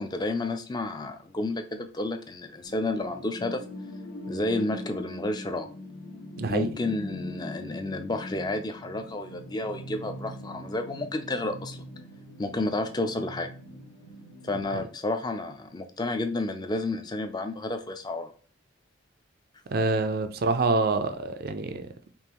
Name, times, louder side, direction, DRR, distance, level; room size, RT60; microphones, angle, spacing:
voice 1, 0.0-3.6 4.3-5.7 6.5-11.8 12.4-13.5 14.4-18.3, left 2 dB, 20° left, 0.4 m, -31 dB
sound 1, 2.6-14.7, left 1 dB, 60° left, 0.9 m, -41 dB
voice 2, 6.4-6.7 14.7-14.8 19.7-21.9, right 3 dB, 45° right, 0.4 m, -26 dB
5.3 x 2.5 x 2.9 m
head